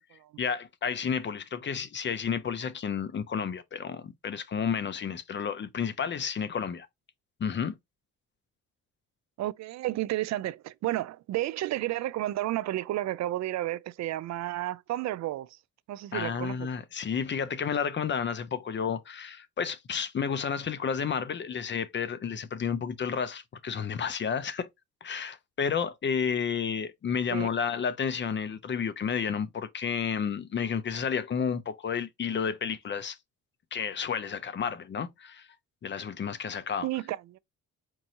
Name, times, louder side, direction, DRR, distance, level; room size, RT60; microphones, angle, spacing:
voice 1, 0.4-6.9 7.4-7.8 16.1-24.7 25.0-33.2 33.7-35.5 35.8-36.9, left 7 dB, 40° left, 0.6 m, -31 dB
voice 2, 9.4-15.6 15.9-16.6 27.3-27.5 36.8-37.4, right 15 dB, 65° right, 0.4 m, -32 dB
4.5 x 2.7 x 2.9 m
cardioid pair, 90°, 30 cm